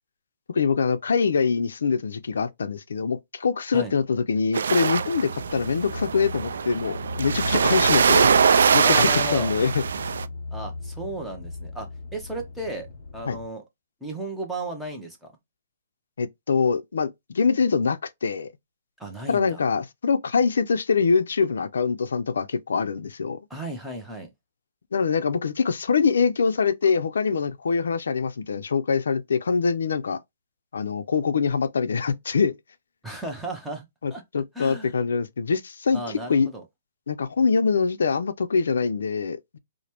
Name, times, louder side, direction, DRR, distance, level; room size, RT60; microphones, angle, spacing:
voice 1, 0.5-8.3 8.7-9.8 13.3-13.4 16.2-18.5 19.3-23.4 24.9-30.2 30.7-32.5 34.0-36.0 36.3-36.5 37.1-39.6, left 5 dB, 90° left, 0.5 m, -24 dB
sound 1, 4.5-10.2, right 6 dB, 75° right, 0.3 m, -22 dB
sound 2, 5.4-13.5, left 3 dB, 40° left, 0.6 m, -36 dB
voice 2, 8.8-9.5 10.5-12.9 13.1-13.6 14.0-15.3 19.0-19.6 23.5-24.3 33.0-33.9 34.1-34.2 34.5-34.9 35.9-36.6, right 1 dB, ahead, 0.6 m, -34 dB
5.0 x 2.1 x 2.9 m
hypercardioid pair, 175°, 0 cm